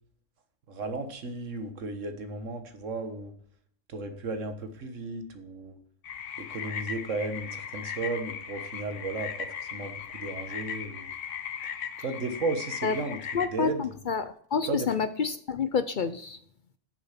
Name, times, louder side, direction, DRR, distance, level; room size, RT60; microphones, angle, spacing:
voice 1, 0.7-3.3 3.9-5.7 6.4-11.1 12.0-13.2 13.5-13.8 14.7-14.9, right 3 dB, 90° right, 8 dB, 1.7 m, -34 dB
sound 1, 6.0-13.5, left 7 dB, 80° left, 1.2 m, -38 dB
voice 2, 13.3-16.4, left 5 dB, 55° left, 12 dB, 0.6 m, -28 dB
9.4 x 7.1 x 5.8 m, 0.63 s
omnidirectional pair, 1.3 m